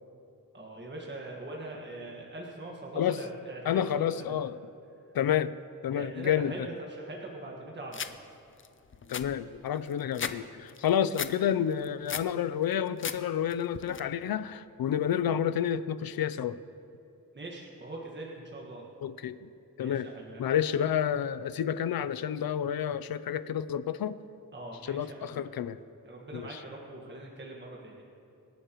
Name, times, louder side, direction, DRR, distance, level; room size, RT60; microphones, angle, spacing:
voice 1, 0.5-4.3 5.9-8.1 17.3-18.9 19.8-20.6 24.5-25.4 26.0-28.0, right 2 dB, 30° right, -2 dB, 1.6 m, -42 dB
voice 2, 3.6-4.6 5.1-5.6 5.8-6.5 9.1-16.6 19.0-19.5 19.8-20.1 20.4-24.2 24.9-25.8 26.3-26.6, left 9 dB, 80° left, 15 dB, 0.5 m, -29 dB
sound 1, 7.9-8.1 8.6-8.7 8.9-10.4 10.7-11.3 11.7-12.3 12.7-13.2 13.5-14.0, left 7 dB, 35° left, 0.5 m, -36 dB
25.5 x 11.5 x 3.1 m, 2.7 s
wide cardioid pair, 175°, 35 cm